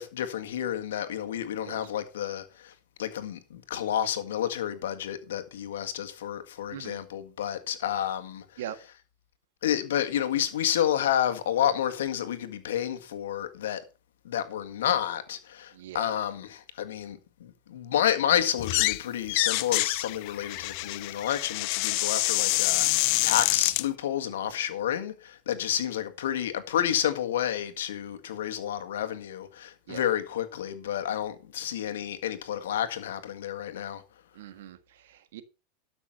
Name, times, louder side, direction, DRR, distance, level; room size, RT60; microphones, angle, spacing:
voice 1, 0.0-2.7 3.0-8.6 9.6-13.8 14.2-34.0, left 10 dB, 90° left, 1.7 m, -30 dB
voice 2, 15.7-16.1 29.9-30.1 34.3-34.8 35.1-35.4, right 11 dB, 80° right, 1.6 m, -40 dB
sound 1, 18.6-19.0 19.3-23.9, left 23 dB, 60° left, 0.4 m, -26 dB
12.5 x 6.2 x 5.7 m
supercardioid pair, 125°, 0 cm